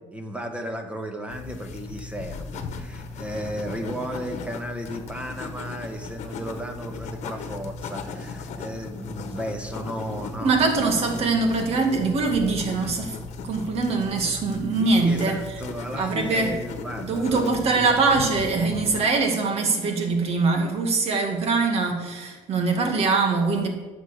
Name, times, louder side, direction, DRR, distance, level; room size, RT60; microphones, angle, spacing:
voice 1, 0.1-10.9 14.8-18.0, equal, 10° right, 5 dB, 1.4 m, -34 dB
sound 1, 1.3-19.0, left 4 dB, 65° left, 1.2 m, -37 dB
voice 2, 10.4-13.2 13.4-15.4 16.0-16.6 17.0-23.7, right 3 dB, 55° right, 4 dB, 2.1 m, -23 dB
10.5 x 6.8 x 6.8 m, 1.3 s
cardioid pair, 115°, 12 cm